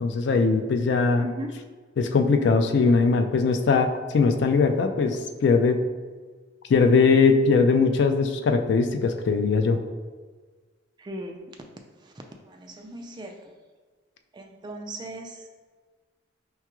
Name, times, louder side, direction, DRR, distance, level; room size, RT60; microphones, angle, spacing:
voice 1, 0.0-1.2 2.0-5.8 6.7-9.8, left 4 dB, 60° left, 6 dB, 0.3 m, -20 dB
voice 2, 1.2-1.6 11.0-11.4 12.0-12.1 12.5-13.5 14.3-15.7, equal, 20° right, 3 dB, 0.3 m, -38 dB
5.6 x 2.3 x 2.9 m, 1.4 s
head